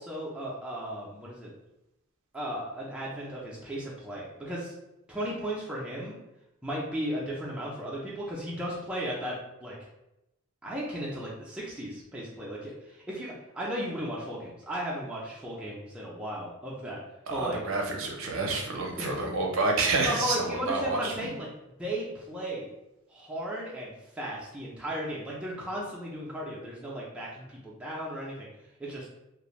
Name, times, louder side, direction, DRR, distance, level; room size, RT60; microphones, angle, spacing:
voice 1, 0.0-1.5 2.3-4.7 5.1-6.2 6.6-9.8 10.6-17.0 17.3-17.6 19.0-19.2 20.0-21.5 21.8-22.7 23.1-28.5 28.8-29.1, equal, 5° right, -5 dB, 0.4 m, -35 dB
voice 2, 17.3-21.3, right 3 dB, 65° right, 1 dB, 0.5 m, -29 dB
2.4 x 2.1 x 3.0 m, 0.90 s
head